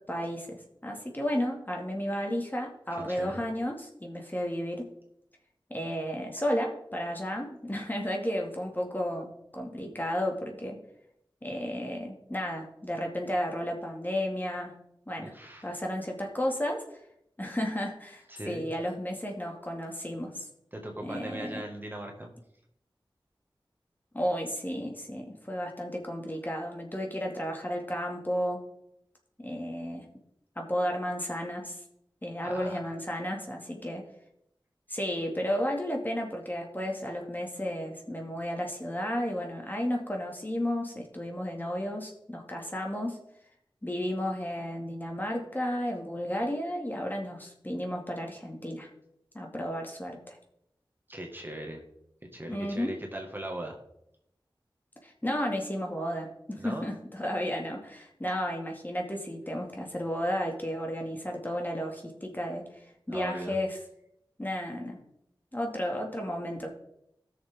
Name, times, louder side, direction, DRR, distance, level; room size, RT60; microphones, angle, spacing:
voice 1, 0.1-4.9 5.7-10.8 11.4-14.8 15.1-15.3 15.6-16.8 17.4-20.5 21.0-21.6 24.1-28.6 29.4-30.1 30.6-31.8 32.2-34.1 34.9-43.2 43.8-48.9 49.3-50.4 52.5-53.0 55.0-63.8 64.4-65.0 65.5-66.7, equal, 20° left, 0 dB, 2.1 m, -33 dB
voice 2, 2.9-3.4 15.2-15.7 18.3-18.7 20.7-22.3 32.4-32.8 51.1-51.8 52.2-53.8 56.6-56.9 63.1-63.6, right 1 dB, 25° right, 1 dB, 1.8 m, -39 dB
15.0 x 6.7 x 3.6 m, 0.78 s
wide cardioid pair, 45°, 9 cm